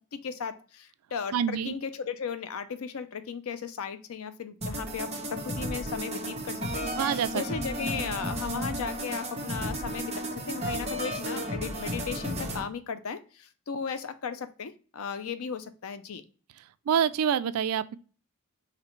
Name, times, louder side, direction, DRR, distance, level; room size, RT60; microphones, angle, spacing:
voice 1, 0.0-6.9 7.3-16.2, left 6 dB, 65° left, 0.5 m, -36 dB
voice 2, 1.3-1.7 7.0-7.4 16.9-18.0, right 8 dB, 75° right, 0.3 m, -26 dB
sound 1, 4.6-12.6, right 1 dB, 30° right, 1.1 m, -33 dB
5.0 x 3.2 x 3.1 m
head